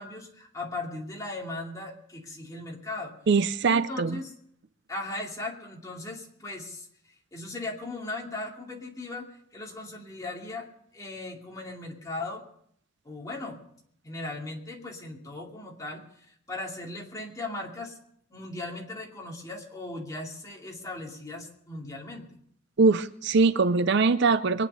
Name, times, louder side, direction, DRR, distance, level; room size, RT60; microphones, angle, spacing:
voice 1, 0.0-3.2 3.7-4.3 4.9-6.9 7.3-9.3 9.5-10.7 10.9-12.4 13.0-13.6 14.0-18.0 18.3-22.4, left 2 dB, 15° left, -1 dB, 2.5 m, -38 dB
voice 2, 3.3-4.2 22.8-24.7, right 4 dB, 55° right, 14 dB, 0.5 m, -22 dB
23.5 x 9.2 x 5.5 m, 0.67 s
head